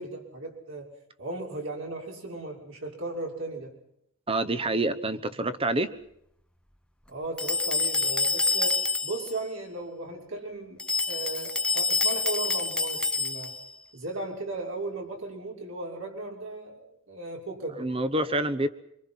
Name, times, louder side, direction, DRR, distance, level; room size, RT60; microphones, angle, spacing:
voice 1, 0.0-3.7 7.1-10.8 11.1-13.5 13.9-17.9, right 2 dB, 70° right, -1 dB, 6.4 m, -36 dB
voice 2, 4.3-5.9 17.8-18.7, right 2 dB, 25° right, 13 dB, 1.1 m, -27 dB
sound 1, 7.4-9.3 10.8-13.7, left 3 dB, 5° left, 0.8 m, -27 dB
25.5 x 25.0 x 5.9 m, 0.77 s
head